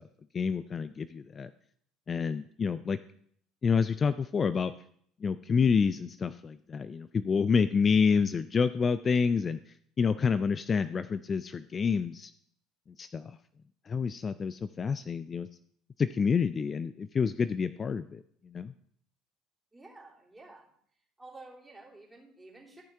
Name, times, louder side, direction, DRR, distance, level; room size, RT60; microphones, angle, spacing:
voice 1, 0.3-1.5 2.1-3.0 3.6-4.7 5.2-9.6 10.0-12.3 13.0-13.4 13.9-15.5 16.0-18.7, left 5 dB, 35° left, 14 dB, 0.3 m, -28 dB
voice 2, 19.7-20.7 21.2-22.8, right 2 dB, 10° right, -4 dB, 3.2 m, -51 dB
13.5 x 5.6 x 3.5 m, 0.64 s
hypercardioid pair, 70°, 0 cm